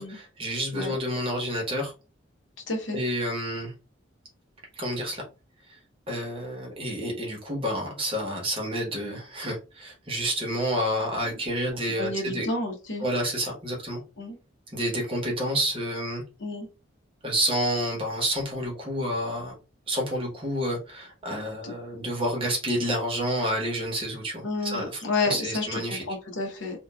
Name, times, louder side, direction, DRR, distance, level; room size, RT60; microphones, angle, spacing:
voice 1, 0.0-1.9 2.9-3.7 4.8-5.2 5.7-5.8 6.1-12.5 13.0-14.0 14.7-16.2 17.2-19.6 19.9-26.0, equal, 25° right, 0 dB, 0.9 m, -29 dB
voice 2, 2.7-3.0 12.0-13.1 14.2-14.4 16.4-16.7 21.6-21.7 24.4-26.8, left 2 dB, 70° left, 1 dB, 0.9 m, -30 dB
3.0 x 2.2 x 2.2 m, 0.31 s
head